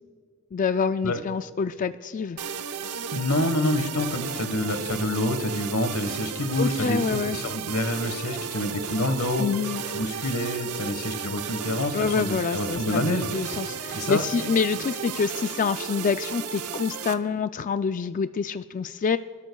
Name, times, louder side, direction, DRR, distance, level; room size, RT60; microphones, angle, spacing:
voice 1, 0.5-2.4 6.6-7.4 9.4-9.8 11.9-19.2, left 5 dB, 35° left, 11 dB, 0.3 m, -27 dB
sound 1, 2.4-17.1, right 7 dB, 90° right, 0.8 m, -34 dB
voice 2, 3.1-9.4 9.9-13.3 13.9-14.2, left 1 dB, 85° left, 9 dB, 1.3 m, -27 dB
28.5 x 13.0 x 2.3 m, 2.1 s
head